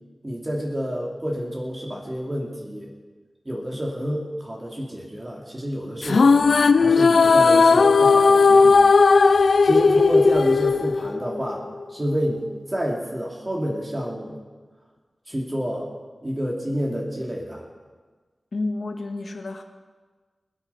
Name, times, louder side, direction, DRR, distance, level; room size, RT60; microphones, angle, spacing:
voice 1, 0.2-2.9 3.4-6.3 6.7-8.9 9.6-14.4 15.3-15.9 16.2-17.6, equal, 25° right, -2 dB, 2.6 m, -29 dB
sound 1, 6.0-11.5, left 4 dB, 85° left, 0.4 m, -16 dB
voice 2, 18.5-19.6, left 2 dB, 70° left, 4 dB, 1.6 m, -30 dB
20.5 x 9.0 x 5.7 m, 1.4 s
wide cardioid pair, 85°, 0 cm